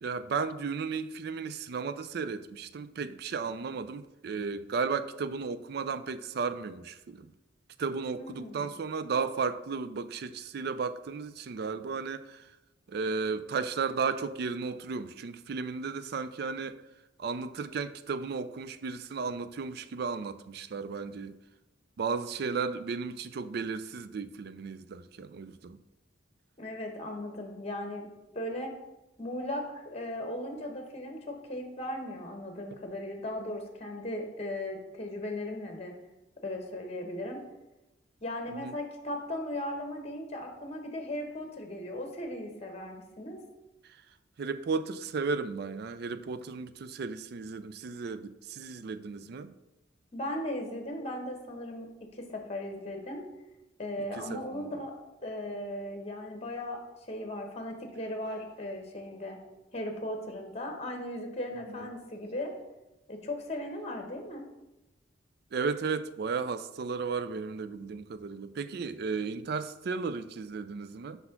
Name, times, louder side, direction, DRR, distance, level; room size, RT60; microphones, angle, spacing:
voice 1, 0.0-7.3 7.8-12.5 12.9-16.8 17.2-21.3 22.0-25.8 38.5-38.8 43.8-44.0 44.4-49.5 54.2-54.7 61.7-61.9 65.5-71.2, right 5 dB, 55° right, 0.4 m, -34 dB
voice 2, 8.1-8.7 26.6-28.1 28.3-28.7 29.2-35.9 36.4-37.4 38.2-43.4 50.1-53.2 53.8-54.9 55.2-56.8 57.1-59.4 59.7-62.5 63.1-64.4, left 1 dB, 35° left, 1.0 m, -37 dB
5.4 x 4.1 x 5.7 m
head